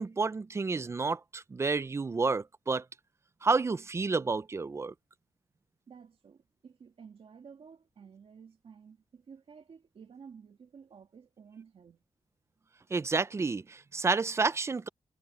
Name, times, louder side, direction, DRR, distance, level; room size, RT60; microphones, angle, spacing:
voice 1, 0.0-2.8 3.4-4.9 12.9-14.9, right 4 dB, 25° right, 0.4 m, -30 dB
voice 2, 5.9-12.0, right 6 dB, 55° right, 2.3 m, -53 dB
wide cardioid pair, 175°, 12 cm